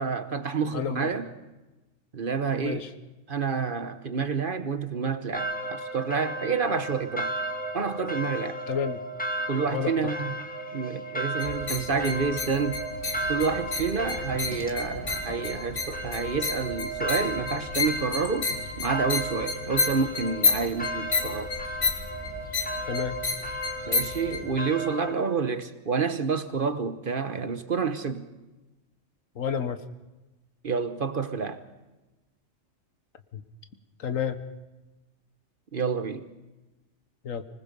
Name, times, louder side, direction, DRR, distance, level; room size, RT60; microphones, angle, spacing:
voice 1, 0.0-1.3 2.1-2.9 3.3-7.3 7.7-8.6 9.5-10.3 10.7-12.8 13.3-18.5 18.8-21.5 23.9-28.3 30.6-31.6 35.7-36.3, right 5 dB, 45° right, 1.1 m, -29 dB
voice 2, 0.7-1.1 2.6-2.9 8.7-9.0 9.7-10.0 22.9-23.2 29.3-29.8 33.3-33.4 34.0-34.4 37.2-37.4, left 7 dB, 80° left, 1.6 m, -30 dB
sound 1, 5.3-25.1, equal, 5° left, 1.6 m, -35 dB
sound 2, 11.4-24.4, left 3 dB, 65° left, 2.4 m, -31 dB
25.5 x 20.0 x 5.4 m
omnidirectional pair, 1.4 m